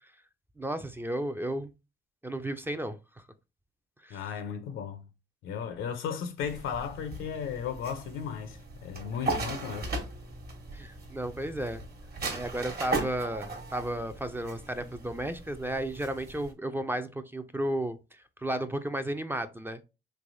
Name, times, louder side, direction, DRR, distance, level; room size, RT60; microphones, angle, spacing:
voice 1, 0.6-1.7 2.2-3.0 4.0-4.2 10.7-11.8 12.3-19.8, right 1 dB, 10° right, 0.3 m, -33 dB
voice 2, 4.1-5.0 5.4-9.9, left 7 dB, 85° left, 0.6 m, -35 dB
sound 1, 6.4-16.5, right 3 dB, 50° right, 1.1 m, -38 dB
3.3 x 3.0 x 2.5 m
cardioid pair, 90°, 20 cm